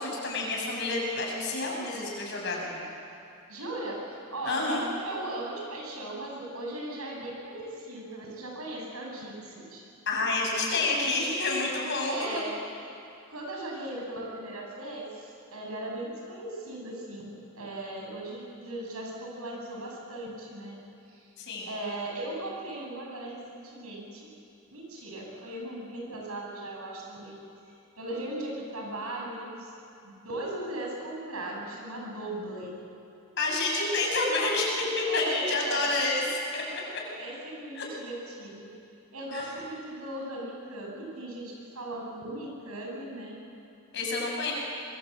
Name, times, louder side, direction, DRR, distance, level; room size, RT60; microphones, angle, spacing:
voice 1, 0.0-2.8 4.4-4.9 10.1-12.1 21.4-21.7 33.4-36.2 36.5-36.8 37.7-37.8 39.3-39.5 43.9-44.5, left 2 dB, 55° left, -1 dB, 6.5 m, -29 dB
voice 2, 3.5-9.8 12.1-12.5 13.3-21.3 21.7-24.3 24.7-27.4 27.6-29.7 30.0-32.7 35.0-36.0 37.2-38.7 39.1-43.4, right 1 dB, 85° right, -1 dB, 7.1 m, -38 dB
24.0 x 23.0 x 8.0 m, 2.6 s
head